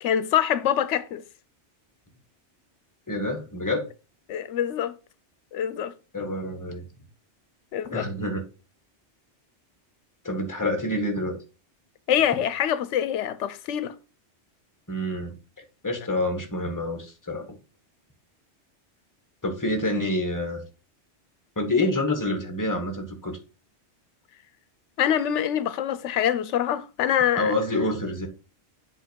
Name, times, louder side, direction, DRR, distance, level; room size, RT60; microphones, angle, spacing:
voice 1, 0.0-1.2 4.3-4.9 5.5-5.9 7.7-8.1 12.1-13.9 25.0-27.5, left 10 dB, 85° left, 0.9 m, -25 dB
voice 2, 3.1-3.9 6.1-6.9 7.9-8.4 10.2-11.4 14.9-15.4 15.8-17.4 19.4-20.6 21.6-23.4 27.4-28.3, left 1 dB, 15° left, 1.4 m, -27 dB
7.9 x 3.3 x 4.5 m
omnidirectional pair, 1.2 m